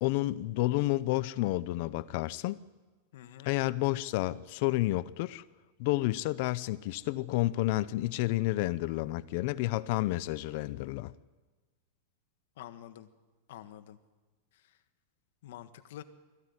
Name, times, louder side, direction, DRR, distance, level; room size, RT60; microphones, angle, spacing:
voice 1, 0.0-2.6 3.5-5.4 5.8-11.1, left 18 dB, 50° left, 0.6 m, -30 dB
voice 2, 3.1-3.5 12.6-13.1 13.5-14.0 14.5-14.8 15.4-16.0, left 12 dB, 65° left, 1.5 m, -47 dB
21.5 x 15.0 x 9.7 m
supercardioid pair, 155°, 0 cm